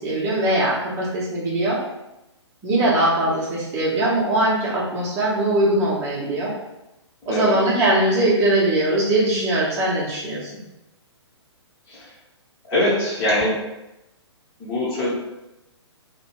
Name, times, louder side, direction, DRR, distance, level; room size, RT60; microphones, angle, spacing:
voice 1, 0.0-1.8 2.6-6.5 7.3-10.5, right 1 dB, 20° right, -6 dB, 0.8 m, -21 dB
voice 2, 12.7-13.6 14.6-15.1, left 1 dB, 25° left, -9 dB, 1.0 m, -22 dB
2.7 x 2.2 x 3.0 m, 0.93 s
figure-of-eight pair, 125°, 15 cm